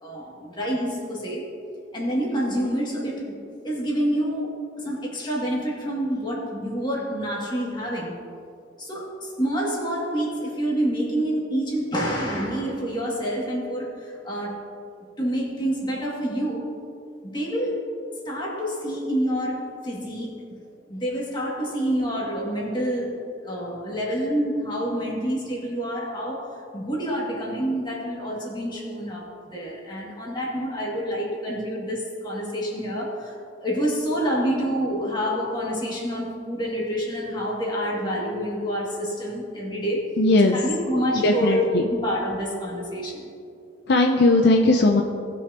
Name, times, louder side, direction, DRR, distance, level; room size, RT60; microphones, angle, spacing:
voice 1, 0.0-1.5 1.9-3.3 3.6-8.2 8.8-14.7 15.2-16.8 17.2-17.9 18.3-20.6 20.9-40.2 40.5-43.3, equal, 25° left, -4 dB, 2.3 m, -27 dB
voice 2, 40.2-40.6 41.1-41.8 43.9-45.0, left 2 dB, 60° left, 2 dB, 0.6 m, -18 dB
19.0 x 6.3 x 2.9 m, 2.4 s
head